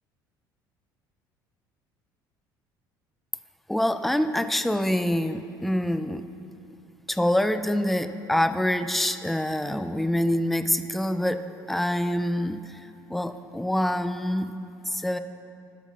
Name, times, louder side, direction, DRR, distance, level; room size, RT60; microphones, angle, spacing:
voice 1, 3.7-6.3 7.1-11.4 11.7-12.8 13.1-14.5 14.9-15.2, left 1 dB, ahead, 10 dB, 0.4 m, -25 dB
12.0 x 5.9 x 4.4 m, 2.6 s
hypercardioid pair, 60°, 11 cm